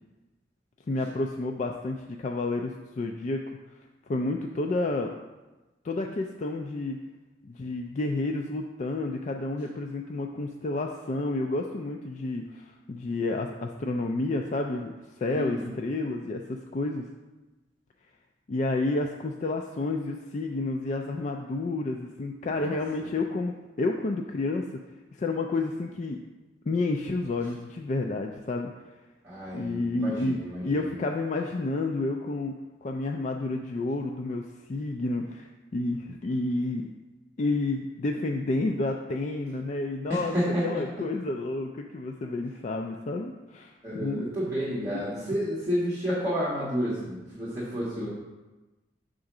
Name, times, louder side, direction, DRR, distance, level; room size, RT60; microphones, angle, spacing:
voice 1, 0.9-3.4 4.1-5.1 5.8-7.0 7.4-14.9 15.2-17.1 18.5-24.7 25.1-26.2 26.7-28.7 29.5-32.5 32.8-36.9 37.4-40.3 40.6-44.3 44.9-45.1, left 2 dB, 40° left, 2 dB, 0.3 m, -30 dB
voice 2, 15.3-15.7 22.4-22.7 29.2-30.9 40.1-40.8 43.8-48.1, equal, 15° right, -9 dB, 1.5 m, -30 dB
6.3 x 3.8 x 5.9 m, 1.2 s
head